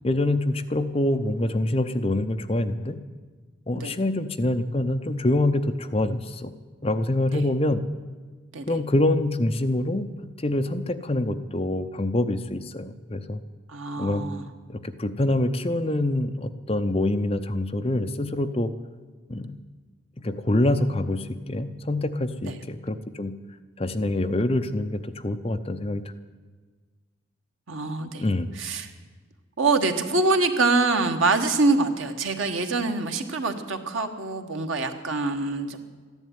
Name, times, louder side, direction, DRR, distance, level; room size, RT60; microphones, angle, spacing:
voice 1, 0.0-3.0 3.7-6.5 6.8-7.8 8.7-10.1 10.4-13.4 14.0-14.2 14.7-18.7 19.3-19.5 20.2-23.3 23.8-26.0 28.2-28.5, left 1 dB, 30° left, 9 dB, 0.6 m, -25 dB
voice 2, 13.7-14.4 22.5-22.6 27.7-28.2 28.5-28.9 29.6-35.8, right 3 dB, 80° right, 6 dB, 1.4 m, -25 dB
13.5 x 11.0 x 9.4 m, 1.4 s
head